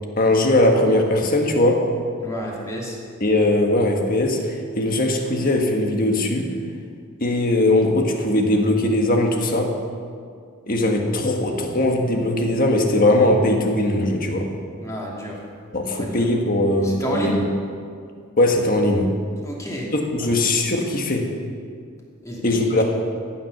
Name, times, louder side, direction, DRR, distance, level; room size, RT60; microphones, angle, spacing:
voice 1, 0.2-1.9 3.2-6.5 7.2-9.7 10.7-14.5 15.7-17.4 18.4-19.1 19.9-21.3 22.4-22.8, left 1 dB, 40° left, 2 dB, 1.6 m, -20 dB
voice 2, 2.2-3.0 14.8-15.4 15.9-16.3 16.8-17.4 19.4-19.9 22.2-22.8, equal, 15° left, -3 dB, 2.8 m, -30 dB
15.0 x 9.5 x 6.7 m, 2.2 s
head